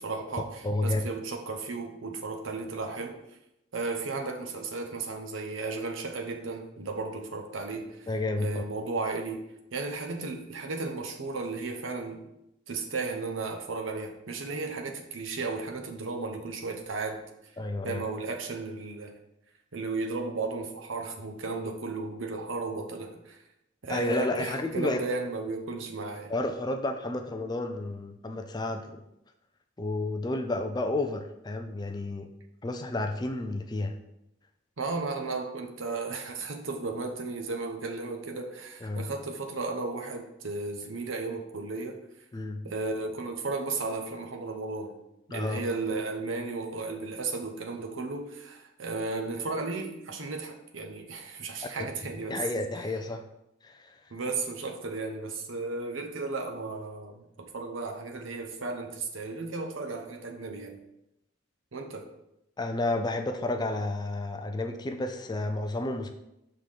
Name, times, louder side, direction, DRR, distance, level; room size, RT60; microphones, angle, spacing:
voice 1, 0.0-3.2 3.7-8.1 8.4-12.2 12.7-17.2 17.8-19.1 19.7-23.4 23.8-26.3 34.8-42.0 42.6-44.9 45.3-52.4 54.1-60.8 61.7-62.1, right 3 dB, 70° right, 3 dB, 0.8 m, -34 dB
voice 2, 0.6-1.1 8.1-8.6 17.6-18.0 23.9-25.0 26.3-29.0 29.8-32.3 32.6-34.0 38.8-39.1 42.3-42.6 45.3-45.6 51.8-51.9 52.3-53.2 53.6-53.9 62.6-66.1, left 2 dB, 20° left, 6 dB, 0.4 m, -31 dB
5.7 x 3.8 x 4.9 m, 0.85 s
head